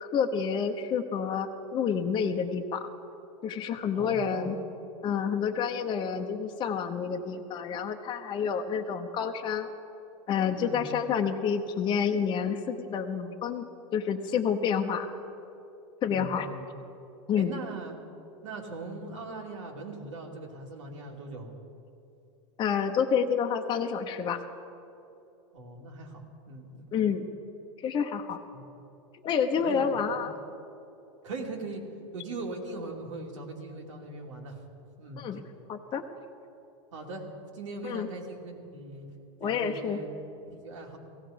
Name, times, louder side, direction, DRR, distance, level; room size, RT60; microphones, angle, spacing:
voice 1, 0.0-2.9 3.4-4.5 5.0-9.7 10.3-13.6 13.9-15.1 16.0-16.5 17.3-17.5 22.6-24.4 26.9-27.3 27.8-28.4 29.1-30.3 35.2-35.4 35.7-36.0 37.8-38.1 39.4-40.0, left 7 dB, 30° left, 4 dB, 0.9 m, -29 dB
voice 2, 3.9-4.6 10.5-10.9 16.0-16.7 17.4-18.0 18.4-21.5 25.5-27.1 28.5-28.8 29.6-30.1 31.2-34.6 35.0-35.2 36.9-37.3 37.5-39.1 39.4-41.0, right 2 dB, 90° right, 0 dB, 2.6 m, -40 dB
17.0 x 16.0 x 5.1 m, 2.8 s
supercardioid pair, 125°, 16 cm